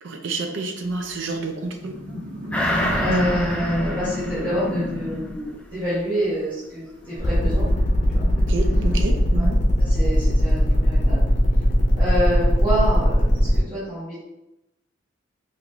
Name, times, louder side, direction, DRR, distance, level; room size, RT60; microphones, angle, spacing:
voice 1, 0.0-1.9 2.8-3.2 8.5-9.6, right 3 dB, 80° right, 4 dB, 0.5 m, -29 dB
sound 1, 1.8-5.4 6.9-9.0, left 1 dB, 60° right, 1.2 m, -33 dB
sound 2, 2.5-5.4 5.8-5.9, equal, 5° left, 0.4 m, -27 dB
voice 2, 3.0-7.6 8.1-8.3 9.4-9.5 9.8-11.2 11.9-14.2, equal, 25° right, -14 dB, 1.4 m, -27 dB
sound 3, 7.2-13.6, left 1 dB, 40° left, 0.7 m, -25 dB
4.5 x 2.6 x 2.6 m, 0.91 s
head